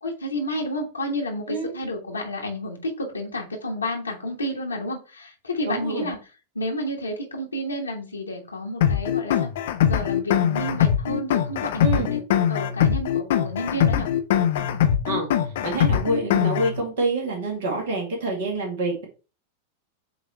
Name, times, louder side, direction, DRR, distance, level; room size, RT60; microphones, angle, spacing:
voice 1, 0.0-6.3 6.5-9.5 9.8-12.2 12.5-14.1, left 1 dB, 80° left, -1 dB, 1.4 m, -30 dB
voice 2, 5.7-6.1 11.8-12.1 15.0-19.0, right 2 dB, 55° right, 0 dB, 2.1 m, -27 dB
sound 1, 8.8-16.8, left 9 dB, 55° left, 0.6 m, -22 dB
7.8 x 3.0 x 4.4 m, 0.34 s
figure-of-eight pair, 90°, 0 cm